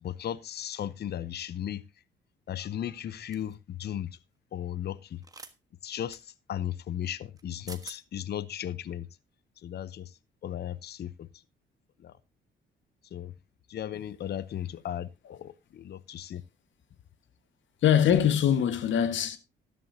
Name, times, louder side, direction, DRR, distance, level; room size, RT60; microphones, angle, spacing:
voice 1, 0.0-1.8 2.5-4.1 4.5-5.2 5.8-6.2 6.5-9.1 9.6-10.1 10.4-11.3 12.0-12.1 13.1-13.3 13.7-16.4, left 10 dB, 55° left, 0.7 m, -36 dB
sound 1, 3.3-3.5 5.2-5.5 6.1-6.2 7.4-7.5 7.7-8.0, right 3 dB, 20° right, 1.3 m, -45 dB
voice 2, 17.8-19.4, left 9 dB, 70° left, 1.6 m, -23 dB
13.0 x 11.5 x 2.8 m
cardioid pair, 90°, 20 cm